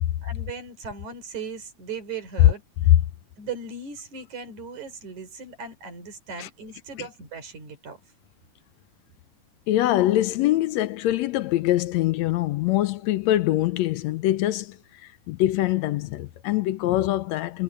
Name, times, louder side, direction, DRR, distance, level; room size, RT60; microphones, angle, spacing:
voice 1, 0.2-2.9 3.4-8.0, right 5 dB, 75° right, 5.9 m, -38 dB
voice 2, 9.7-17.6, left 14 dB, 75° left, 1.8 m, -23 dB
omnidirectional pair, 3.4 m